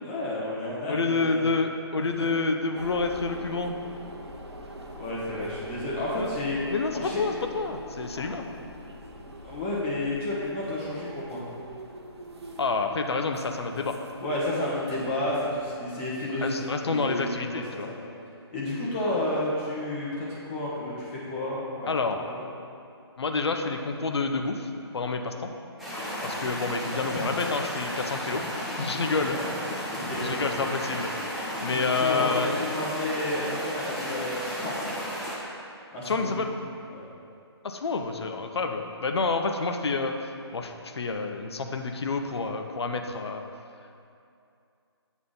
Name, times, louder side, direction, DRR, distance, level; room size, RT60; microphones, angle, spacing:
voice 1, 0.0-1.4 2.2-2.3 4.9-6.6 6.9-7.2 8.1-8.2 9.4-11.4 14.2-17.3 17.9-18.0 18.5-22.4 29.3-29.4 29.8-30.4 31.7-34.3 34.6-34.8 35.9-36.3 36.9-37.1, left 1 dB, 30° left, -6 dB, 1.3 m, -31 dB
voice 2, 0.9-3.8 6.1-6.3 6.7-8.4 12.6-14.0 16.4-17.9 21.9-22.2 23.2-25.5 26.2-28.4 28.8-29.4 29.7-29.9 30.2-31.1 31.6-32.5 36.0-36.5 37.6-40.1 40.5-43.4, left 4 dB, 70° left, 5 dB, 0.6 m, -28 dB
sound 1, 2.7-15.7, right 1 dB, 75° right, 0.8 m, -44 dB
sound 2, 25.8-35.3, equal, ahead, 0.8 m, -33 dB
8.1 x 3.7 x 3.8 m, 2.5 s
figure-of-eight pair, 145°, 14 cm